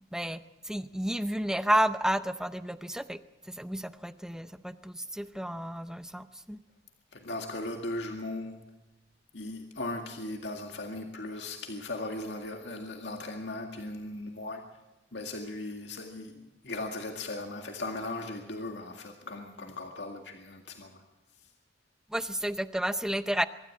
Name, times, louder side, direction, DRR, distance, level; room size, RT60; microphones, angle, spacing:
voice 1, 0.1-3.2 3.4-6.6 22.1-23.5, right 1 dB, 5° right, 11 dB, 0.6 m, -31 dB
voice 2, 7.1-8.6 9.3-14.6 15.1-21.0, left 2 dB, 70° left, 3 dB, 2.1 m, -38 dB
24.0 x 13.5 x 8.6 m, 1.0 s
head